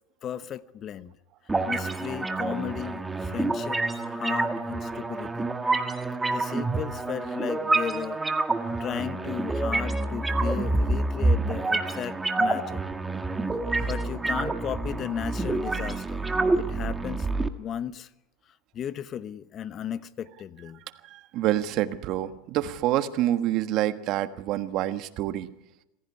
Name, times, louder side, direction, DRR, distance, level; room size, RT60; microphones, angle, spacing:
voice 1, 0.2-1.1 1.7-5.9 6.3-8.2 8.8-12.8 13.5-13.6 13.9-16.3 16.5-18.1 18.7-20.8, left 9 dB, 40° left, 1.0 m, -35 dB
sound 1, 1.5-17.5, right 2 dB, 15° right, 1.7 m, -27 dB
voice 2, 21.1-25.5, right 13 dB, 55° right, 1.4 m, -27 dB
25.5 x 16.0 x 9.7 m
supercardioid pair, 100°, 0 cm